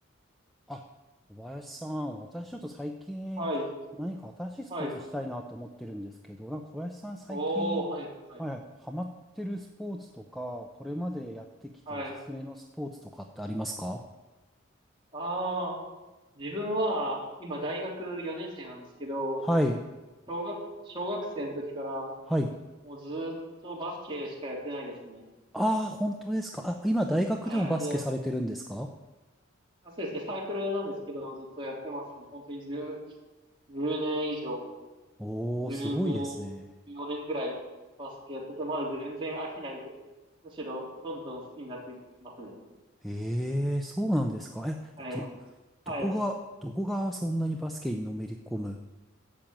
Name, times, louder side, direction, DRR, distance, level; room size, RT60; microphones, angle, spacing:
voice 1, 1.3-3.5 4.0-7.8 8.4-14.0 19.4-19.8 22.3-22.5 25.5-28.9 35.2-36.7 43.0-45.3 45.9-46.3 46.6-48.8, equal, ahead, 3 dB, 0.6 m, -32 dB
voice 2, 3.4-3.7 4.7-4.9 7.3-8.4 11.9-12.2 15.1-15.7 16.4-19.5 20.3-22.1 22.9-25.2 27.5-28.1 29.8-33.0 33.7-34.7 35.6-36.4 36.9-37.5 38.0-39.9 40.4-42.0 42.2-42.5 45.0-45.3 45.9-46.1, equal, 25° right, -4 dB, 3.4 m, -34 dB
12.0 x 7.6 x 8.9 m, 1.1 s
head